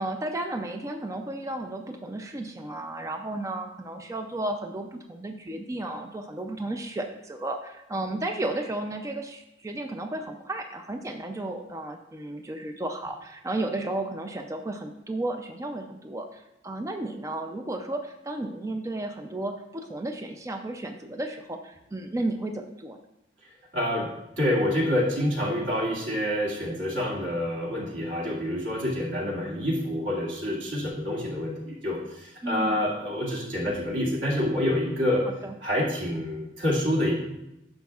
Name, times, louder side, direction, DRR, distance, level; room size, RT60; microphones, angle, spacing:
voice 1, 0.0-23.0 32.4-32.8 35.4-35.5, right 2 dB, 15° right, 4 dB, 0.4 m, -33 dB
voice 2, 23.7-24.1 24.4-35.3 35.6-37.1, left 1 dB, 90° right, -4 dB, 2.1 m, -27 dB
10.5 x 6.3 x 2.4 m, 0.89 s
head